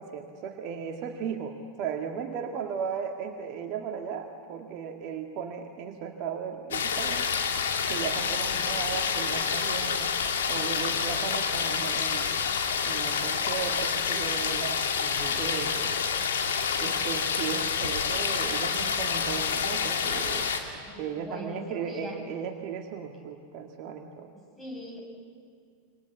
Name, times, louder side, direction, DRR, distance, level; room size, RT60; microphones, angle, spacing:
voice 1, 0.0-7.3 7.9-10.1 10.5-12.3 12.8-16.0 16.8-20.5 20.7-24.3, right 7 dB, 40° right, 3 dB, 2.0 m, -36 dB
sound 1, 6.7-20.6, left 6 dB, 65° left, 2.6 m, -28 dB
voice 2, 20.9-22.2 24.6-25.0, equal, 10° left, 1 dB, 7.6 m, -41 dB
27.5 x 25.0 x 8.3 m, 2.2 s
figure-of-eight pair, 90°, 0 cm